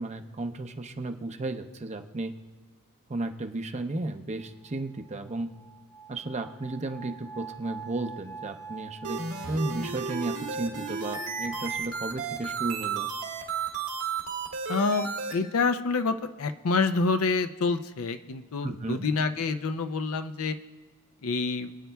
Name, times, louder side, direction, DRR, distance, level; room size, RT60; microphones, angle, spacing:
voice 1, 0.0-2.3 3.1-5.5 6.1-9.2 9.5-13.1 18.6-19.1, right 2 dB, 30° right, 7 dB, 0.6 m, -34 dB
sound 1, 4.7-11.8, right 6 dB, 10° left, 0.4 m, -44 dB
sound 2, 9.0-15.3, right 5 dB, 80° right, 1.9 m, -33 dB
voice 2, 14.7-20.5 21.2-21.7, left 4 dB, 70° left, 9 dB, 0.5 m, -27 dB
26.5 x 9.3 x 2.3 m, 1.3 s
head